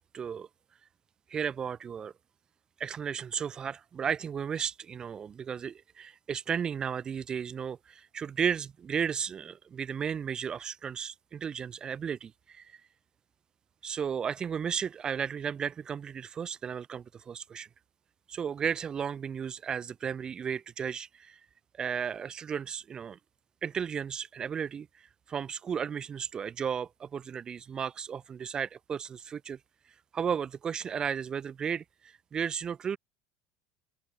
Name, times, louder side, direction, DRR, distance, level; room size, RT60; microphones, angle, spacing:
voice 1, 0.1-0.5 1.3-2.1 2.8-12.8 13.8-17.7 18.3-21.4 21.8-23.2 23.6-29.6 30.1-33.0, right 7 dB, 25° right, 3.1 m, -34 dB
open air
supercardioid pair, 135°, 3 cm